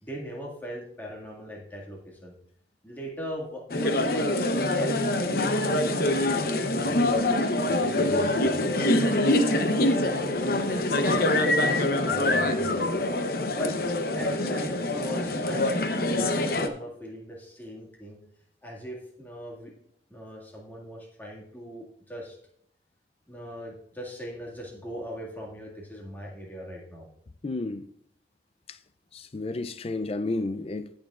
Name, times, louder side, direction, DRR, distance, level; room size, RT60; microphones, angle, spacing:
voice 1, 0.0-2.3 2.8-8.6 9.0-9.1 9.4-13.0 13.6-13.7 14.1-18.2 18.6-19.7 20.1-22.4 23.3-27.1, equal, 10° left, 2.0 m, -40 dB
sound 1, 3.7-16.7, left 1 dB, 55° left, 0.8 m, -25 dB
voice 2, 27.4-27.9 29.1-30.9, left 2 dB, 35° left, 0.4 m, -31 dB
19.0 x 6.4 x 2.4 m
head